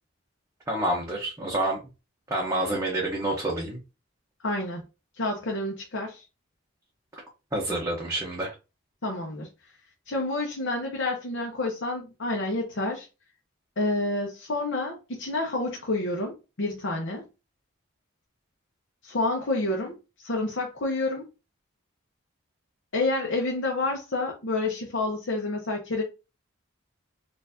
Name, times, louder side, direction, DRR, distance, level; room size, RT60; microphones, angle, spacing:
voice 1, 0.7-1.8 2.3-3.8 7.5-8.5, right 1 dB, 15° right, 0.6 m, -28 dB
voice 2, 4.4-4.8 5.2-6.2 9.0-9.5 10.1-13.1 13.8-17.2 19.0-21.2 22.9-26.0, left 2 dB, 70° left, 0.8 m, -29 dB
4.4 x 2.5 x 2.6 m
head